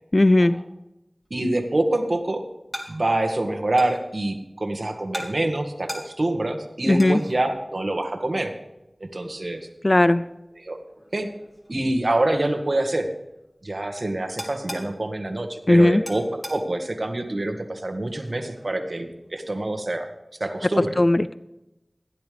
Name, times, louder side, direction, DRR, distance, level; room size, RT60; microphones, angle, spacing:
voice 1, 0.1-0.5 6.9-7.2 9.8-10.2 15.7-16.0 21.0-21.3, left 1 dB, 45° left, 15 dB, 0.4 m, -17 dB
sound 1, 1.2-19.8, equal, 15° left, 3.3 m, -44 dB
voice 2, 1.3-2.4 2.9-8.5 9.1-9.6 10.6-10.8 11.1-11.3 11.7-13.1 13.6-20.1 20.4-20.9, right 1 dB, 60° right, 5 dB, 1.7 m, -26 dB
16.0 x 10.5 x 3.4 m, 0.94 s
wide cardioid pair, 45°, 0 cm